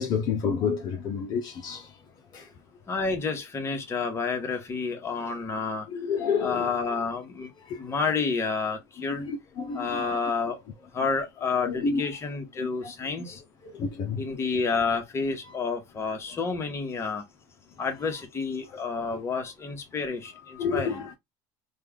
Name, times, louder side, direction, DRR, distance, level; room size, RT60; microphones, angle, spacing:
voice 1, 0.0-1.9 2.3-2.5 5.9-6.7 7.6-7.8 9.1-10.2 11.6-12.0 12.6-12.9 13.6-14.2 20.6-21.1, left 5 dB, 50° left, 0.7 m, -29 dB
voice 2, 2.9-5.9 6.4-7.5 7.8-9.2 9.7-10.6 10.9-13.4 14.2-17.2 17.8-21.0, left 4 dB, 30° left, 1.2 m, -29 dB
3.2 x 2.4 x 3.5 m
supercardioid pair, 110°, 9 cm